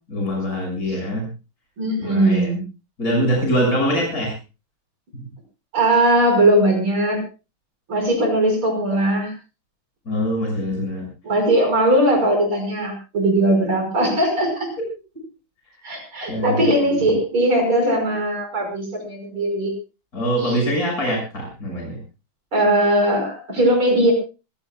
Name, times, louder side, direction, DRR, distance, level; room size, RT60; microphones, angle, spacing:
voice 1, 0.1-1.3 2.0-2.5 3.0-4.3 10.1-11.1 16.3-16.7 20.1-22.0, equal, 45° left, 0 dB, 7.1 m, -23 dB
voice 2, 1.8-2.6 5.7-7.2 7.9-9.3 11.2-14.7 15.8-19.7 20.4-20.6 22.5-24.1, right 1 dB, 90° right, 3 dB, 6.5 m, -19 dB
26.5 x 17.0 x 2.3 m, 0.31 s
omnidirectional pair, 2.2 m